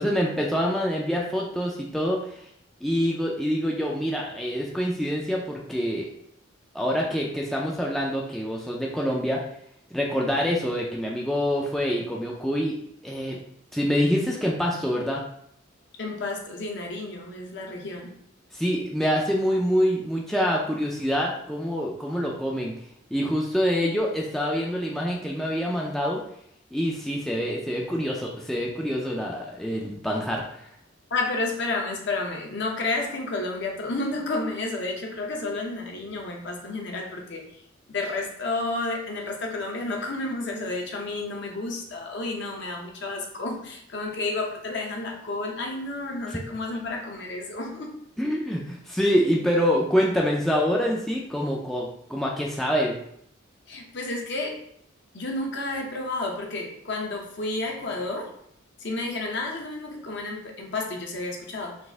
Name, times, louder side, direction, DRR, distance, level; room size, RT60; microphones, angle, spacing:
voice 1, 0.0-2.4 2.8-6.1 6.7-9.4 9.9-12.7 13.0-13.4 13.7-15.2 18.5-22.7 23.1-26.2 26.7-30.7 48.2-53.0, equal, ahead, -2 dB, 0.3 m, -26 dB
voice 2, 16.0-18.2 31.1-37.4 37.9-48.0 53.7-54.6 55.1-58.3 58.8-61.8, left 2 dB, 55° left, 1 dB, 0.8 m, -31 dB
4.1 x 2.5 x 3.4 m, 0.68 s
head